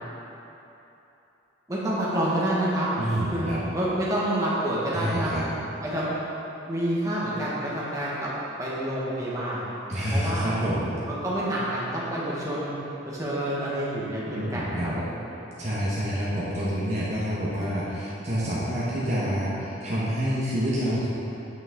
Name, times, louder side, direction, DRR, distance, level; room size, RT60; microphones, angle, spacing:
voice 1, 1.7-3.5 3.7-5.5 5.8-6.1 6.7-8.3 8.6-9.6 10.1-10.5 11.1-12.8 13.1-15.2, right 1 dB, 15° right, -8 dB, 1.6 m, -28 dB
voice 2, 3.0-3.6 4.9-5.4 9.9-10.9 14.3-14.9 15.6-21.1, equal, 35° right, -8 dB, 1.4 m, -27 dB
9.0 x 8.7 x 3.8 m, 3.0 s
head